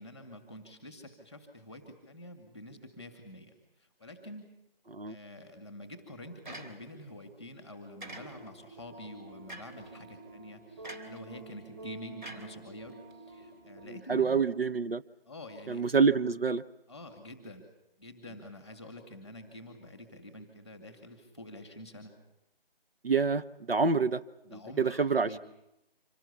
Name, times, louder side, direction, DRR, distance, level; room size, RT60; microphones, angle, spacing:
voice 1, 0.0-4.5 5.1-14.5 15.3-15.9 16.9-17.6 18.0-22.1 24.4-25.4, left 1 dB, 5° right, 6 dB, 1.7 m, -47 dB
sound 1, 6.4-7.1 8.0-8.7 9.5-9.9 10.8-11.2 12.2-13.1, right 1 dB, 50° right, 3.4 m, -46 dB
sound 2, 8.0-13.9, right 3 dB, 20° right, 6.0 m, -49 dB
voice 2, 13.9-15.0 15.7-16.6 23.0-24.2 24.5-25.4, right 5 dB, 70° right, 10 dB, 1.2 m, -27 dB
26.5 x 18.5 x 8.3 m, 0.88 s
figure-of-eight pair, 170°, 30 cm